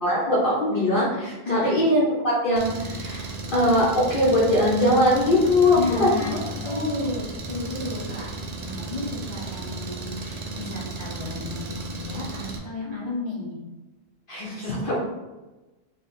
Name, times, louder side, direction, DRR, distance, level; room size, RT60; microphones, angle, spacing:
voice 1, 0.0-6.9 14.3-15.0, left 1 dB, 60° left, -7 dB, 0.9 m, -22 dB
voice 2, 1.4-1.8 5.8-8.3 8.6-13.6, left 2 dB, 30° left, -7 dB, 0.9 m, -32 dB
Engine, 2.6-12.6, right 2 dB, 55° right, 0.5 m, -34 dB
3.3 x 2.0 x 4.1 m, 1.1 s
omnidirectional pair, 1.0 m